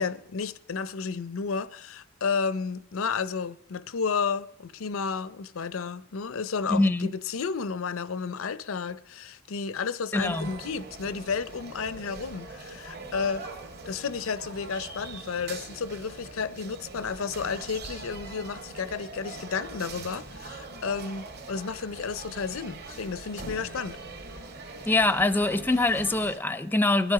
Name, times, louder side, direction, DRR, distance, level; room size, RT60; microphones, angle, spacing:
voice 1, 0.0-13.4 13.9-24.0, left 5 dB, 85° left, 0.6 m, -32 dB
voice 2, 6.7-7.1 10.1-10.5 24.9-27.1, left 2 dB, 10° left, 0.5 m, -24 dB
sound 1, 10.1-26.4, right 3 dB, 50° right, 2.0 m, -42 dB
21.5 x 10.5 x 4.8 m
head